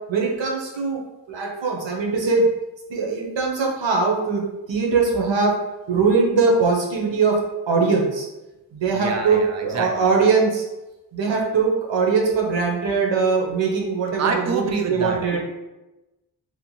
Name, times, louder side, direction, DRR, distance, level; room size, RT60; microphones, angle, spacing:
voice 1, 0.1-1.0 1.3-2.5 2.9-4.4 4.7-5.6 5.9-8.3 8.7-10.6 11.1-15.4, right 4 dB, 85° right, -1 dB, 0.7 m, -21 dB
voice 2, 8.9-9.9 14.2-15.4, right 4 dB, 40° right, 4 dB, 0.4 m, -27 dB
2.8 x 2.1 x 3.0 m, 1.0 s
wide cardioid pair, 95°, 43 cm